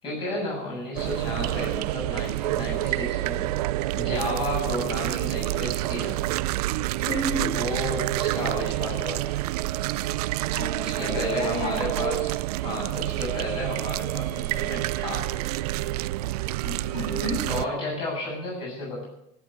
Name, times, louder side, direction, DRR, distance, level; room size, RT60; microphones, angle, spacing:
voice 1, 0.0-3.5 3.9-6.2 7.4-9.4 10.8-15.3 17.5-19.0, left 2 dB, 25° left, -2 dB, 7.5 m, -33 dB
sound 1, 1.0-17.7, right 17 dB, 70° right, 0.5 m, -28 dB
voice 2, 7.1-7.6 10.5-11.9 16.6-17.4, equal, 60° left, 0 dB, 4.8 m, -31 dB
16.0 x 8.4 x 8.5 m, 0.80 s
supercardioid pair, 170°, 21 cm